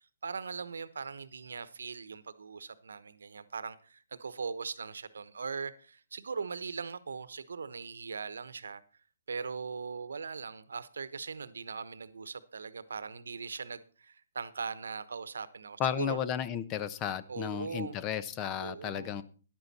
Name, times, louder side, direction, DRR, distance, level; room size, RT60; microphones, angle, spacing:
voice 1, 0.2-8.8 9.3-16.2 17.3-18.0 18.6-19.2, right 5 dB, 70° right, 1.0 m, -40 dB
voice 2, 15.8-19.2, left 9 dB, 25° left, 0.9 m, -33 dB
13.5 x 11.0 x 4.2 m
figure-of-eight pair, 130°, 0 cm